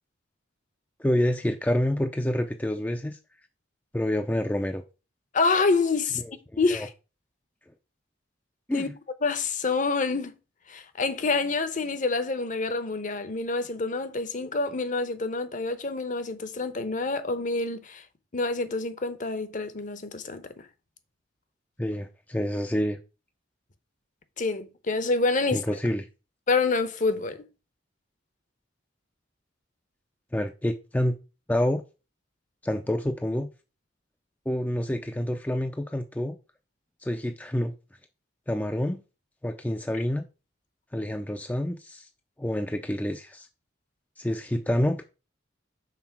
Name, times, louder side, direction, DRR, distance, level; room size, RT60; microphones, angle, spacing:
voice 1, 1.0-3.2 3.9-4.8 6.2-6.3 6.7-6.9 8.7-8.9 21.8-23.0 25.5-26.1 30.3-31.2 31.5-31.8 32.6-33.5 34.5-36.4 37.0-37.7 38.5-39.0 39.4-40.2 40.9-42.1 42.4-43.5 44.2-45.0, left 1 dB, 10° left, 0.5 m, -27 dB
voice 2, 5.3-6.2 6.6-6.9 8.7-8.9 9.2-10.3 10.7-18.0 18.3-20.4 24.4-25.6 26.5-27.5, left 3 dB, 45° left, 0.8 m, -27 dB
5.9 x 4.1 x 5.9 m
head